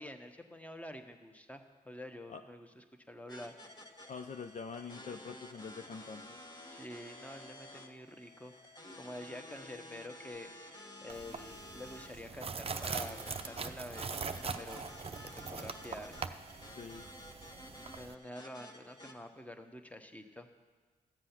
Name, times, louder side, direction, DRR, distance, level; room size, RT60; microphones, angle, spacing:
voice 1, 0.0-3.6 6.7-10.5 11.0-14.8 15.2-16.1 18.0-20.5, left 1 dB, 10° left, 6 dB, 1.2 m, -48 dB
sound 1, 3.3-19.1, left 1 dB, 25° left, 1.4 m, -52 dB
voice 2, 4.1-6.2 16.8-17.1, left 5 dB, 45° left, 7 dB, 0.5 m, -44 dB
sound 2, 11.1-18.1, right 5 dB, 35° right, 0.6 m, -42 dB
13.5 x 7.6 x 5.8 m, 1.4 s
supercardioid pair, 50°, 17 cm